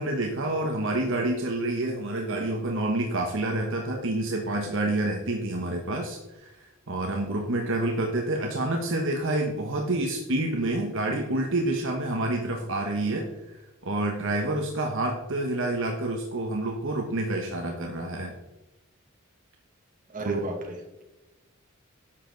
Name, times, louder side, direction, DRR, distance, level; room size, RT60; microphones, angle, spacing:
voice 1, 0.0-6.5 6.9-13.3 13.8-18.3 20.2-20.4, right 2 dB, 65° right, 1 dB, 1.3 m, -28 dB
voice 2, 20.1-21.0, right 2 dB, 40° right, 1 dB, 2.2 m, -34 dB
11.0 x 7.6 x 4.0 m, 1.0 s
head